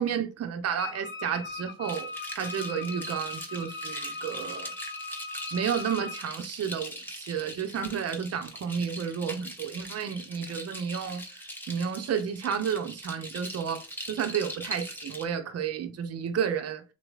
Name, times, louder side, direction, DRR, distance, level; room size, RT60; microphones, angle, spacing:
voice 1, 0.0-2.1 2.4-4.7 5.5-11.2 11.7-16.8, right 7 dB, 55° right, 0.8 m, -31 dB
Wind instrument woodwind instrument, 0.8-6.3, left 3 dB, 40° left, 1.0 m, -39 dB
sound 1, 1.9-15.2, equal, 5° left, 1.1 m, -42 dB
4.0 x 3.0 x 3.5 m
cardioid pair, 90°, 30 cm